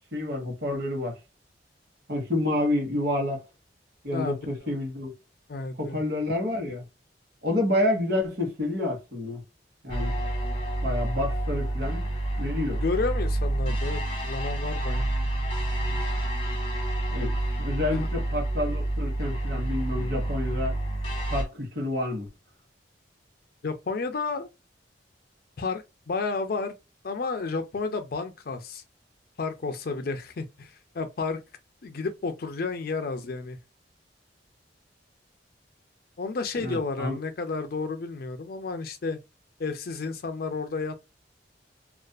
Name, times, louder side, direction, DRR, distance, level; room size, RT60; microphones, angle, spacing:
voice 1, 0.1-1.1 2.1-3.4 4.0-5.1 5.8-6.8 7.4-9.4 9.8-10.1 10.8-12.0 12.4-12.8 17.1-20.8 21.3-22.3 36.6-37.2, left 1 dB, 60° right, 1.2 m, -29 dB
voice 2, 4.1-4.7 5.5-6.0 12.8-15.1 17.9-18.1 23.6-24.5 25.6-26.8 27.0-28.8 29.4-31.4 31.8-33.6 36.2-39.2 39.6-41.0, left 4 dB, 55° left, 0.5 m, -31 dB
sound 1, 9.9-21.4, right 1 dB, 30° left, 0.8 m, -28 dB
2.4 x 2.4 x 2.2 m
head